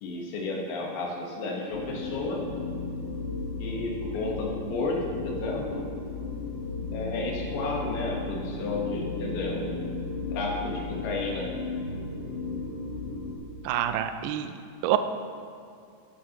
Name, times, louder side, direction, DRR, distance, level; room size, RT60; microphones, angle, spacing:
voice 1, 0.0-2.5 3.6-5.8 6.9-9.7 10.3-11.5, left 2 dB, 85° left, -2 dB, 2.9 m, -32 dB
sound 1, 1.7-13.4, left 3 dB, 55° left, 1.5 m, -35 dB
voice 2, 13.7-14.5 14.8-15.0, right 12 dB, 80° right, 9 dB, 2.1 m, -26 dB
15.5 x 7.6 x 2.9 m, 2.3 s
omnidirectional pair, 3.8 m